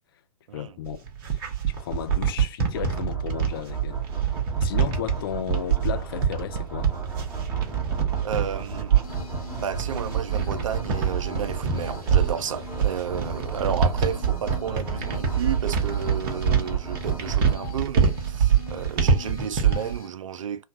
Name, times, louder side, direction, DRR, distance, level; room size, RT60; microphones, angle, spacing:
voice 1, 0.5-1.1 1.3-4.0 4.6-6.9, left 10 dB, 40° left, 0.4 m, -34 dB
sound 1, 0.8-20.0, right 7 dB, 35° right, 1.0 m, -25 dB
sound 2, 2.7-17.5, right 6 dB, 10° right, 1.4 m, -34 dB
voice 2, 8.2-9.0 9.6-20.6, right 8 dB, 60° right, 0.4 m, -32 dB
sound 3, 9.0-20.1, left 7 dB, 70° left, 1.1 m, -44 dB
3.1 x 2.2 x 2.7 m
figure-of-eight pair, 120°, 19 cm